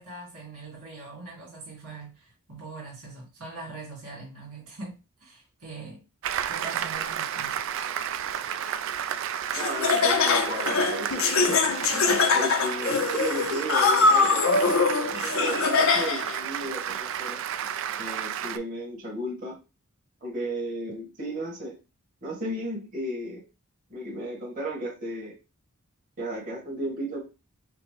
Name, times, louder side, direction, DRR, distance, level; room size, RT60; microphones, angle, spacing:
voice 1, 0.0-6.0 6.5-7.6, right 3 dB, 80° right, 2.0 m, -42 dB
Applause, 6.2-18.6, right 9 dB, 60° right, 0.3 m, -32 dB
Laughter, 9.5-16.3, left 4 dB, 65° left, 0.5 m, -23 dB
voice 2, 9.5-17.4 18.0-19.6 20.2-21.8 22.2-23.4 23.9-25.3 26.2-27.2, right 1 dB, 35° right, 1.6 m, -34 dB
5.1 x 2.1 x 3.2 m
head